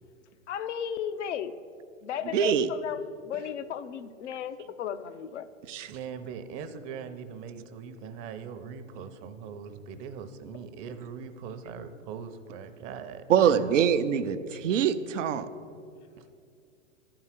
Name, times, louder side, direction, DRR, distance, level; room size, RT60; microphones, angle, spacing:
voice 1, 0.5-1.5 2.0-5.5, left 9 dB, 65° left, 12 dB, 0.7 m, -35 dB
voice 2, 2.3-2.7 5.7-5.9 13.3-15.5, right 8 dB, 75° right, 11 dB, 0.7 m, -24 dB
voice 3, 5.9-13.7 16.2-16.3, right 6 dB, 35° right, 9 dB, 0.7 m, -41 dB
11.0 x 4.8 x 7.4 m, 2.4 s
hypercardioid pair, 110°, 37 cm